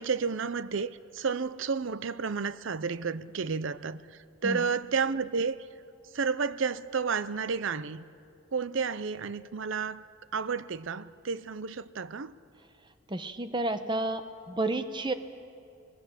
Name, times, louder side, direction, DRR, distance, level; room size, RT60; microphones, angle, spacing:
voice 1, 0.0-5.6 6.1-8.0 8.5-10.0 10.3-12.4, right 5 dB, 60° right, 0.6 m, -31 dB
voice 2, 13.1-15.1, right 2 dB, 20° right, 0.9 m, -31 dB
26.0 x 19.5 x 7.4 m
head